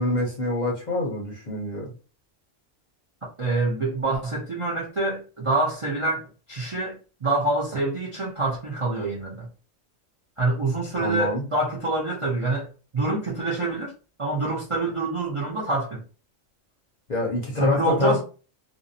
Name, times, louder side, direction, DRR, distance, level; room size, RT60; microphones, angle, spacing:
voice 1, 0.0-1.9 11.0-11.4 17.1-18.2, left 2 dB, 45° left, 0.7 m, -26 dB
voice 2, 3.2-9.5 10.4-12.7 12.9-13.9 14.2-16.0 17.6-18.2, right 2 dB, 40° right, 0.5 m, -26 dB
2.6 x 2.0 x 2.6 m
omnidirectional pair, 1.3 m